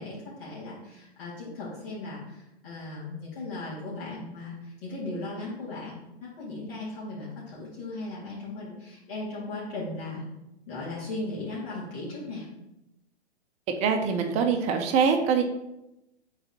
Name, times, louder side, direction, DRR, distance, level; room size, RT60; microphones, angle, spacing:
voice 1, 0.0-10.2 10.7-12.5, left 2 dB, 60° left, -8 dB, 2.3 m, -37 dB
voice 2, 13.8-15.4, right 6 dB, 20° right, 5 dB, 0.6 m, -23 dB
8.7 x 4.0 x 2.9 m, 0.90 s
figure-of-eight pair, 120°, 33 cm